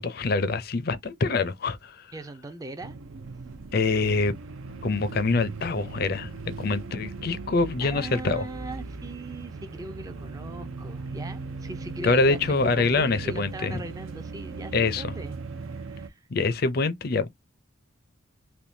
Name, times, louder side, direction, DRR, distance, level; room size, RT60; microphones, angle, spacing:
voice 1, 0.0-2.1 3.7-4.4 4.8-6.3 6.6-8.4 12.0-13.8 14.7-15.1 16.3-17.3, left 3 dB, 50° left, 0.5 m, -25 dB
voice 2, 2.1-3.0 7.8-15.3 15.6-16.3, right 2 dB, 15° right, 0.4 m, -40 dB
sound 1, 2.8-16.1, right 4 dB, 85° right, 0.6 m, -38 dB
3.5 x 2.6 x 2.6 m
head